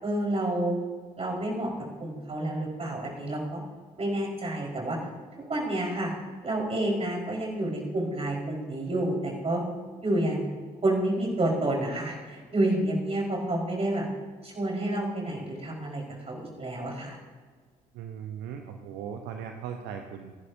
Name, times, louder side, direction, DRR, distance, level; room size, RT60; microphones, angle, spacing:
voice 1, 0.0-0.8 1.2-1.7 2.0-3.6 4.0-5.0 5.5-6.1 6.4-9.6 10.0-10.5 10.8-14.0 14.4-17.2, right 1 dB, 30° right, -2 dB, 4.9 m, -29 dB
voice 2, 17.9-20.3, right 8 dB, 60° right, 5 dB, 1.0 m, -38 dB
27.5 x 11.0 x 2.8 m, 1.5 s
figure-of-eight pair, 45°, 20 cm